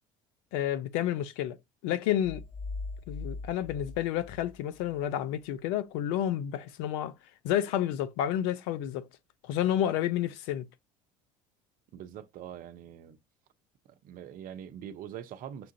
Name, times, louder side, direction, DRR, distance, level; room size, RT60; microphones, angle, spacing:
voice 1, 0.5-1.6 1.8-2.4 3.1-7.1 7.4-9.1 9.4-10.6, left 11 dB, 75° left, 0.6 m, -30 dB
sound 1, 2.2-5.0, left 3 dB, 20° left, 0.6 m, -40 dB
voice 2, 11.9-13.2 14.0-15.7, right 9 dB, 55° right, 0.7 m, -43 dB
6.0 x 2.5 x 2.7 m
hypercardioid pair, 75°, 17 cm